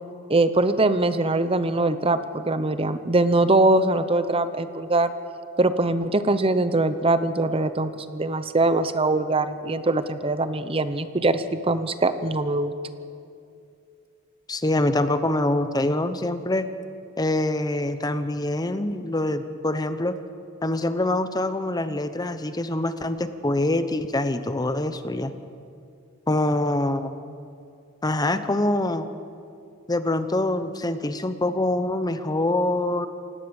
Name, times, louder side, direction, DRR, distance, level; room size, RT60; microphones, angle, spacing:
voice 1, 0.3-5.1 5.6-12.7, right 2 dB, 25° right, 11 dB, 0.8 m, -22 dB
voice 2, 14.5-16.7 17.2-20.1 20.6-25.3 26.3-27.1 28.0-29.1 29.9-33.1, left 1 dB, 20° left, 10 dB, 0.9 m, -25 dB
28.0 x 17.5 x 7.1 m, 2.5 s
head